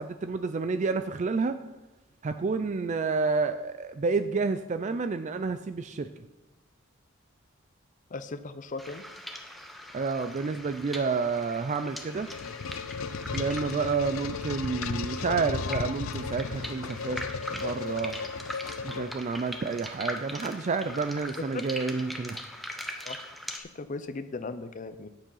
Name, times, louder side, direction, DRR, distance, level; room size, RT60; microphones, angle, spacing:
voice 1, 0.0-1.6 2.2-6.1 9.9-12.3 13.3-17.2 17.5-18.2 18.8-22.4, right 4 dB, 35° right, 9 dB, 0.3 m, -29 dB
voice 2, 8.1-9.0 21.5-21.6 23.1-23.2 23.5-25.1, left 3 dB, 40° left, 10 dB, 0.5 m, -37 dB
sound 1, 8.8-23.6, left 1 dB, ahead, 0.8 m, -41 dB
sound 2, 11.7-19.5, left 5 dB, 90° left, 0.5 m, -35 dB
9.0 x 7.4 x 5.5 m, 1.0 s
head